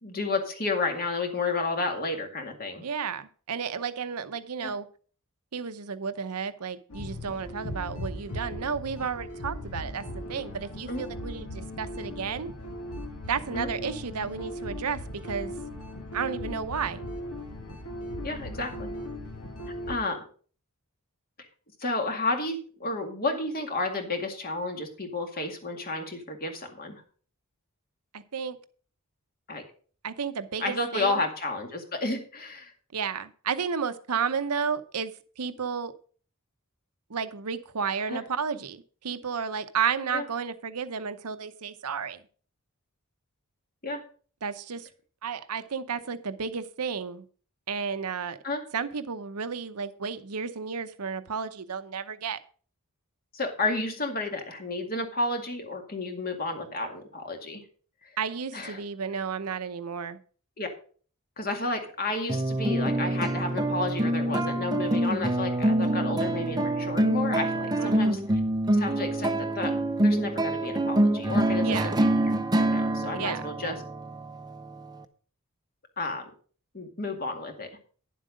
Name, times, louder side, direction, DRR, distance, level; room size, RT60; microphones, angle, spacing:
voice 1, 0.0-2.9 4.6-4.7 10.9-11.1 13.5-13.7 18.2-18.9 19.9-20.2 21.8-27.0 29.5-29.6 30.6-32.7 38.1-38.2 40.1-40.2 43.8-44.0 48.4-48.6 53.3-57.6 58.0-58.1 58.5-58.8 60.6-60.7 61.4-68.2 68.8-69.7 70.0-72.2 72.6-73.8 76.0-76.3 76.7-77.7, left 2 dB, 40° left, 4 dB, 2.1 m, -31 dB
voice 2, 2.8-4.9 5.5-12.5 13.3-15.5 16.1-17.0 28.1-28.6 30.0-31.2 32.9-35.9 37.1-42.2 44.4-44.9 45.2-47.2 47.7-48.4 48.7-52.4 58.2-60.2 67.8-68.2 71.6-72.0 73.1-73.4, right 6 dB, 85° right, 11 dB, 0.8 m, -32 dB
sound 1, 6.9-20.0, left 1 dB, 70° left, 1.8 m, -38 dB
sound 2, 62.3-75.0, right 1 dB, 20° right, 0.7 m, -26 dB
10.5 x 7.5 x 5.1 m, 0.42 s
head